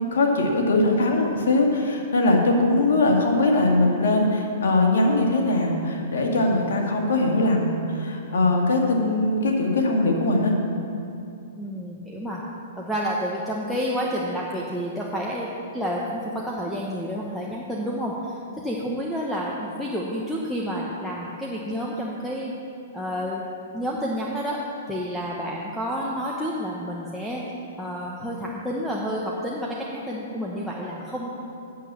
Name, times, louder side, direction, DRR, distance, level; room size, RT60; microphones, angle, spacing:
voice 1, 0.1-10.5, left 2 dB, 80° left, 0 dB, 1.9 m, -21 dB
voice 2, 11.6-12.4 12.8-18.4 18.6-22.6 22.9-23.5 23.7-24.6 24.9-27.4 27.8-31.3, equal, ahead, -4 dB, 1.0 m, -29 dB
8.5 x 7.5 x 7.5 m, 2.6 s
hypercardioid pair, 135°, 0 cm